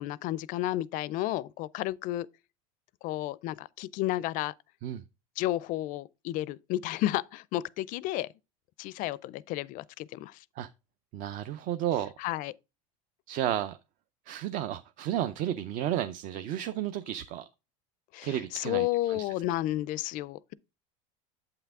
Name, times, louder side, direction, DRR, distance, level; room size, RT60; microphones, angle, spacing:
voice 1, 0.0-2.3 3.0-4.5 5.4-8.3 8.8-10.4 12.2-12.5 18.1-20.5, left 15 dB, 50° left, 0.4 m, -32 dB
voice 2, 11.1-12.1 13.3-13.8 14.3-17.5 18.2-19.3, right 11 dB, 50° right, 0.5 m, -32 dB
8.0 x 5.8 x 3.5 m
supercardioid pair, 135°, 18 cm